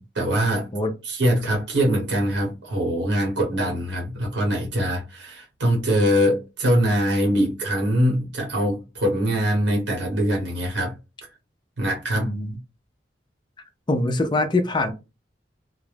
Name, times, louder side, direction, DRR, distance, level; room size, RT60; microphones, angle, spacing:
voice 1, 0.1-0.7 1.0-10.9 11.8-12.3, equal, 70° right, 0.9 m, -23 dB
voice 2, 12.2-12.6 13.9-14.9, left 2 dB, 25° left, 0.4 m, -23 dB
2.4 x 2.1 x 3.2 m
head